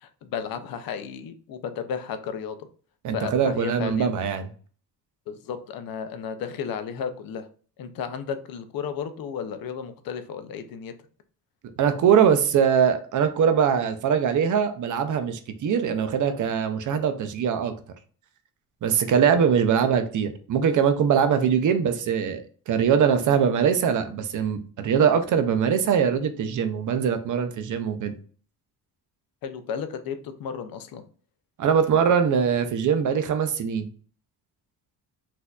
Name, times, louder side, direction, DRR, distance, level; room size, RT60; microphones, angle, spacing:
voice 1, 0.0-2.7 3.1-4.1 5.3-7.5 7.8-10.9 29.4-31.0, left 7 dB, 65° left, 9 dB, 0.5 m, -33 dB
voice 2, 3.0-4.5 11.8-17.7 18.8-28.1 31.6-33.9, right 7 dB, 50° right, 9 dB, 0.5 m, -22 dB
4.2 x 2.6 x 2.3 m, 0.43 s
cardioid pair, 140°, 38 cm